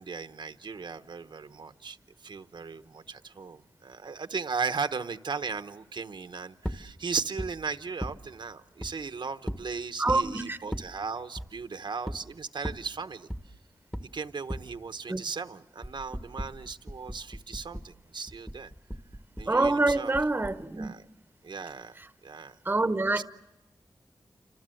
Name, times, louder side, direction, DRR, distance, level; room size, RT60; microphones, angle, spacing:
voice 1, 0.0-13.3 14.1-18.7 19.4-20.1 20.7-21.1 21.4-22.0 22.2-22.6 23.1-23.2, right 5 dB, 70° right, 1.0 m, -37 dB
sound 1, 6.6-6.8 7.4-7.5 8.0-8.2 8.8-8.9 9.5-9.7 10.1-10.3 10.7-10.9 11.4-11.5 12.1-12.2 12.6-12.8 13.3-13.5 13.9-14.1 14.5-14.7 15.8-17.9 18.3-20.6, equal, 5° left, 1.1 m, -36 dB
voice 2, 10.0-10.6 15.1-15.2 19.5-20.9 22.7-23.2, right 2 dB, 25° right, 0.9 m, -26 dB
29.0 x 25.5 x 7.8 m
wide cardioid pair, 100°, 8 cm